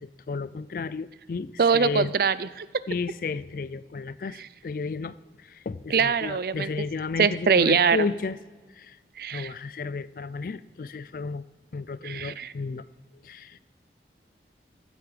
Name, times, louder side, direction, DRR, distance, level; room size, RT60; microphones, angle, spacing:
voice 1, 0.0-2.1 2.9-8.4 8.7-9.0 9.3-11.4 11.7-12.9 13.1-13.6, left 4 dB, 50° left, 17 dB, 0.4 m, -33 dB
voice 2, 1.6-2.7 5.9-6.7 7.2-8.0 9.2-9.5 12.0-12.5, right 6 dB, 55° right, 16 dB, 0.4 m, -23 dB
15.5 x 8.4 x 4.9 m, 1.3 s
head